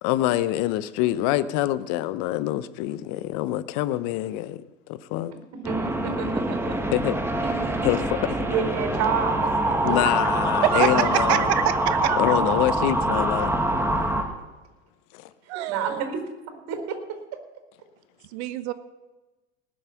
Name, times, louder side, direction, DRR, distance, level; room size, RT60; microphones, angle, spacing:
voice 1, 0.0-5.3 6.9-7.1 7.8-8.2 9.8-11.5 12.2-13.5 15.1-15.3, left 14 dB, 55° left, 15 dB, 0.9 m, -25 dB
sound 1, 5.6-14.2, right 1 dB, 5° right, 2.0 m, -25 dB
voice 2, 5.6-6.7 7.4-8.0 8.3-9.5 9.9-10.0 15.7-16.2 16.7-17.0, right 6 dB, 50° right, 5 dB, 4.3 m, -29 dB
voice 3, 10.6-12.4 15.5-16.1 18.3-18.7, right 13 dB, 65° right, 12 dB, 1.2 m, -25 dB
19.5 x 7.6 x 5.9 m, 1.1 s
hypercardioid pair, 85°, 35 cm